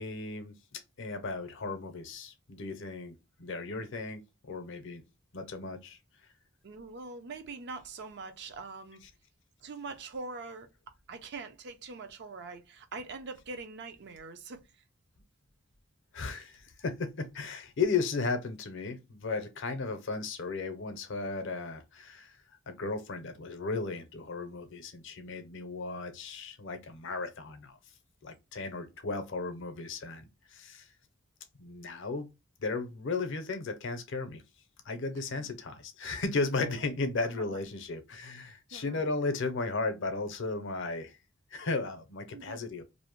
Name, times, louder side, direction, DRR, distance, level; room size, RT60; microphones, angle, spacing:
voice 1, 0.0-5.0 5.3-6.0 16.1-22.4 22.7-27.8 28.2-30.9 31.6-32.3 32.6-34.4 34.8-41.2 41.5-42.8, left 3 dB, 65° left, 0.6 m, -35 dB
voice 2, 6.6-9.0 9.6-10.7 11.1-14.6 35.3-35.5 36.6-36.9 37.2-37.6 38.7-39.1 42.3-42.7, right 3 dB, 55° right, 0.5 m, -43 dB
2.6 x 2.0 x 2.9 m
head